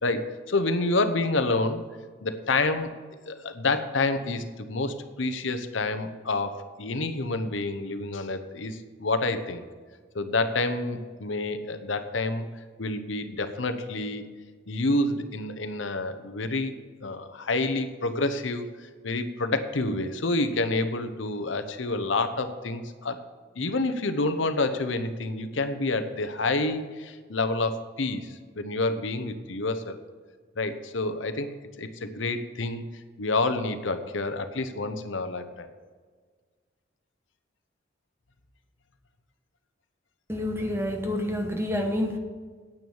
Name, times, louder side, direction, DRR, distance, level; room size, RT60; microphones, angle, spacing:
voice 1, 0.0-1.8 2.2-2.9 3.3-9.6 10.1-12.4 12.8-14.3 14.7-16.7 17.0-23.2 23.6-30.0 30.6-32.9 33.2-35.7, left 2 dB, 85° left, 10 dB, 0.9 m, -28 dB
voice 2, 40.3-42.2, left 1 dB, 15° right, 4 dB, 1.1 m, -28 dB
9.3 x 8.8 x 7.2 m, 1.6 s
head